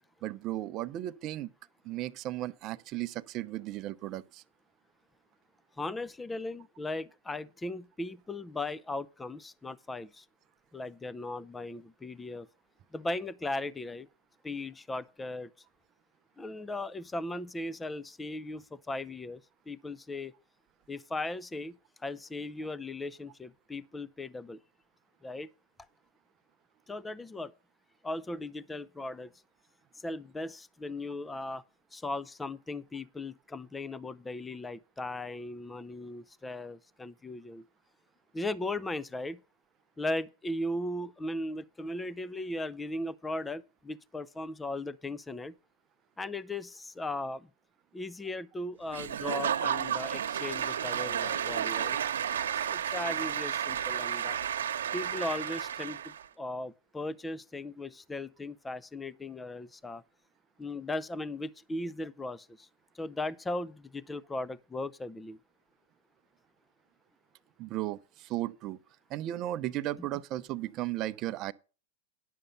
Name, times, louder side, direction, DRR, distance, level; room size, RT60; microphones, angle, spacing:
voice 1, 0.2-1.5 1.8-4.4 67.6-68.8 69.1-71.5, right 14 dB, 40° right, 0.6 m, -35 dB
voice 2, 5.8-10.2 10.7-12.5 12.9-14.1 14.4-15.5 16.4-20.3 20.9-21.8 22.0-24.6 25.2-25.5 26.9-27.5 28.0-29.3 30.0-31.6 31.9-37.6 38.3-39.4 40.0-45.5 46.2-47.5 47.9-52.0 52.3-54.4 54.9-60.0 60.6-62.7 62.9-65.4, left 2 dB, 10° left, 0.4 m, -37 dB
Applause / Crowd, 48.9-56.2, right 9 dB, 85° right, 1.0 m, -32 dB
10.5 x 6.5 x 5.5 m
hypercardioid pair, 125°, 0 cm